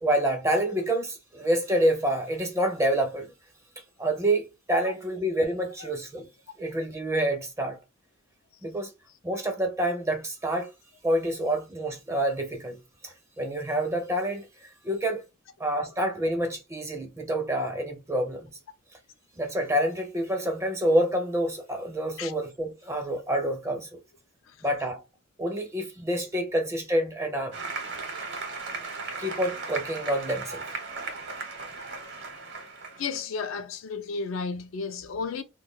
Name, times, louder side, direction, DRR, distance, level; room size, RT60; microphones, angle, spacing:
voice 1, 0.0-3.3 4.0-6.3 6.6-7.8 8.6-8.9 9.2-10.7 11.0-12.8 13.0-15.2 15.6-18.5 19.4-24.0 24.6-25.0 25.4-27.6 29.2-30.6, right 1 dB, 15° right, 0.4 m, -27 dB
Applause, 27.5-33.2, right 4 dB, 60° right, 0.8 m, -36 dB
voice 2, 33.0-35.4, left 5 dB, 75° left, 0.4 m, -33 dB
2.2 x 2.2 x 3.3 m
head